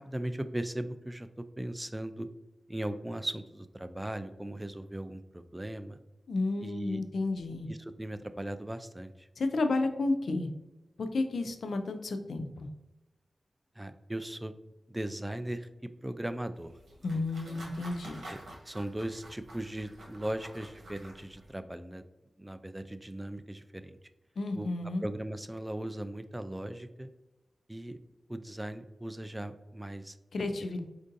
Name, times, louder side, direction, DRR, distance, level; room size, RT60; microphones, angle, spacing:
voice 1, 0.0-2.3 2.7-6.0 6.6-7.0 7.7-9.3 13.8-14.5 14.9-15.7 16.0-16.7 17.1-17.2 17.5-17.6 18.3-18.4 18.7-22.0 22.4-24.0 24.5-24.7 25.0-27.1 27.7-28.0 28.3-30.2, right 1 dB, 20° right, 11 dB, 0.3 m, -38 dB
voice 2, 6.3-7.7 9.4-10.5 11.0-12.7 17.0-18.2 24.4-25.0 30.3-30.9, left 2 dB, 85° left, 7 dB, 0.3 m, -31 dB
sound 1, 16.6-21.5, right 1 dB, 80° right, 1.1 m, -49 dB
4.5 x 2.6 x 2.5 m, 1.0 s
cardioid pair, 40°, 0 cm